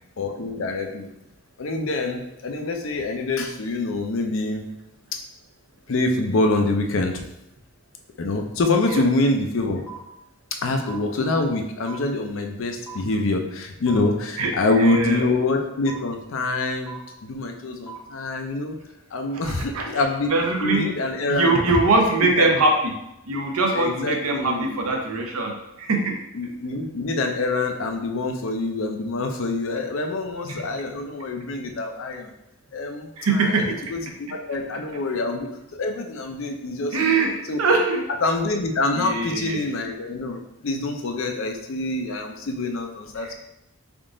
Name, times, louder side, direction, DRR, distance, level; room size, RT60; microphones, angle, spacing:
voice 1, 0.2-1.1 1.6-4.6 5.1-5.2 5.9-7.2 8.2-9.8 10.6-16.9 17.2-18.8 19.1-21.6 22.2-22.5 23.7-24.8 26.3-32.3 32.7-37.2 37.5-37.6 38.2-43.3, left 2 dB, 65° left, 4 dB, 0.5 m, -25 dB
sound 1, 8.9-9.0 9.9-10.0 10.9-11.0 11.9-12.0 12.9-13.0 13.9-14.0 14.9-15.0 15.9-16.0 16.9-17.0 17.9-18.0, right 6 dB, 15° left, 0.6 m, -37 dB
voice 2, 14.4-15.2 19.3-19.8 20.3-20.9 21.3-22.9 23.3-25.5 25.8-26.1 30.5-30.6 33.2-33.7 36.9-37.3 37.6-38.0 38.9-39.6 43.2-43.3, right 3 dB, 90° right, 1 dB, 0.7 m, -22 dB
3.6 x 2.4 x 3.7 m, 0.86 s
head